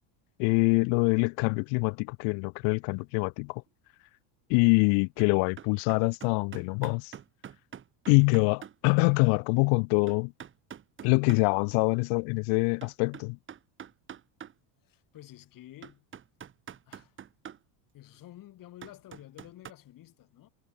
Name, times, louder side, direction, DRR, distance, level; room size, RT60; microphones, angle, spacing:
voice 1, 0.4-3.6 4.5-7.1 8.1-10.3 11.0-13.4, left 39 dB, 65° left, 0.7 m, -25 dB
sound 1, 5.2-5.3 5.6-8.8 9.3-9.4 10.1-11.4 12.8-14.5 15.2-15.3 15.8-17.6 18.8-19.7, right 9 dB, 25° right, 1.9 m, -45 dB
voice 2, 14.8-16.0 16.9-17.2 17.9-20.5, left 14 dB, 45° left, 7.7 m, -50 dB
cardioid pair, 150°, 46 cm